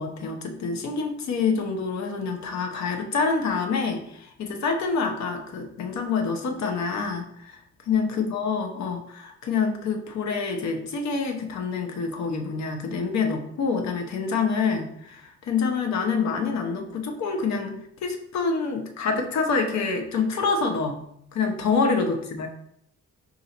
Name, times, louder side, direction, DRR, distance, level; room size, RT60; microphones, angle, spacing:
voice 1, 0.0-7.6 7.8-21.0 21.3-22.5, left 5 dB, 65° left, 4 dB, 0.8 m, -27 dB
4.3 x 2.7 x 3.9 m, 0.71 s
cardioid pair, 90°, 30 cm